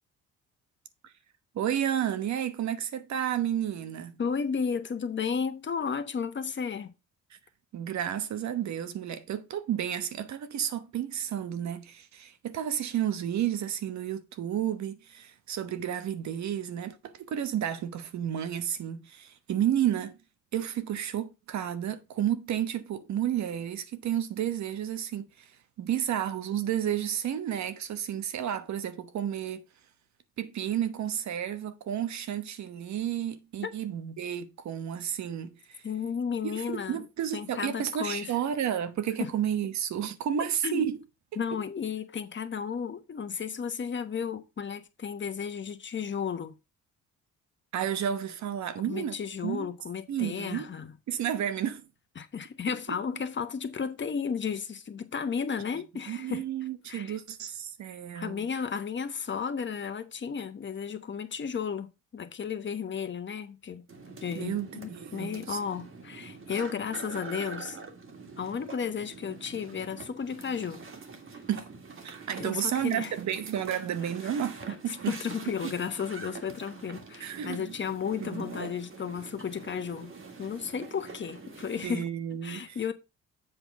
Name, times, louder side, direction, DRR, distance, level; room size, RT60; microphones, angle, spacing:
voice 1, 1.5-4.2 7.7-20.2 20.5-25.5 25.8-29.7 30.4-35.8 36.4-41.0 47.7-49.7 50.1-50.7 51.1-51.8 56.1-58.5 64.3-65.6 71.5-71.7 72.0-75.2 75.5-75.6 77.2-77.8 78.2-78.7 81.8-82.8, right 10 dB, 65° right, 1.1 m, -31 dB
voice 2, 4.2-6.9 33.6-33.7 35.8-37.1 37.3-38.3 39.2-39.3 40.6-40.9 41.4-46.5 48.9-50.9 52.2-56.4 56.9-57.2 58.1-63.8 64.2-67.8 68.4-70.8 72.3-73.1 74.9-80.1 80.4-82.1 82.4-82.9, left 6 dB, 40° left, 1.1 m, -33 dB
sound 1, 63.9-81.9, right 4 dB, 45° right, 1.9 m, -45 dB
7.8 x 4.4 x 4.6 m
cardioid pair, 90°, 30 cm